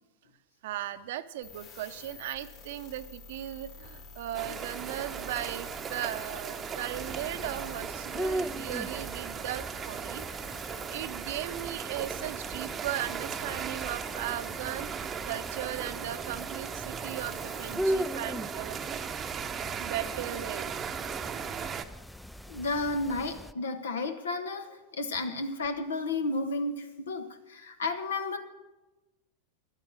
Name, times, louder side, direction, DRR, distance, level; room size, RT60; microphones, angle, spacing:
voice 1, 0.6-10.2 10.6-18.8 19.8-20.8, right 12 dB, 70° right, 12 dB, 0.7 m, -37 dB
sound 1, 1.4-17.7, left 4 dB, 50° left, 3.2 m, -51 dB
sound 2, 4.3-21.9, right 7 dB, 30° right, 0.7 m, -37 dB
sound 3, 6.9-23.5, equal, ahead, 0.3 m, -39 dB
voice 2, 22.5-28.4, left 2 dB, 85° left, 9 dB, 1.2 m, -32 dB
11.0 x 9.0 x 7.4 m, 1.1 s
hypercardioid pair, 100°, 0 cm